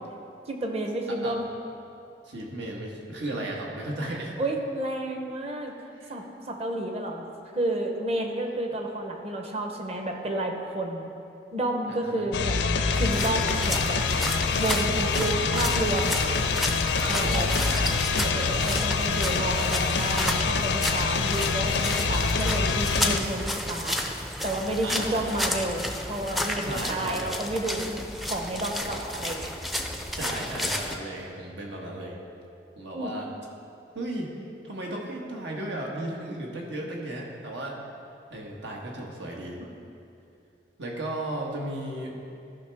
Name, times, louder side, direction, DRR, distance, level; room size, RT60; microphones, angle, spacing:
voice 1, 0.5-1.5 4.4-5.7 6.1-7.3 7.5-11.1 11.5-14.0 14.5-16.4 17.1-17.5 17.9-24.0 24.4-29.5 32.9-33.1, right 1 dB, 35° right, 3 dB, 0.8 m, -31 dB
voice 2, 1.1-1.4 2.2-4.3 5.9-6.1 11.9-12.3 17.0-18.8 24.8-25.4 26.6-27.3 30.1-32.2 32.8-33.3 33.9-34.3 34.6-37.8 38.3-39.6 40.8-42.2, right 1 dB, 85° right, -1 dB, 1.4 m, -35 dB
sound 1, 12.3-23.2, left 4 dB, 80° left, 0.5 m, -26 dB
sound 2, 12.9-31.0, left 1 dB, ahead, 0.4 m, -32 dB
13.5 x 5.8 x 3.5 m, 2.6 s
head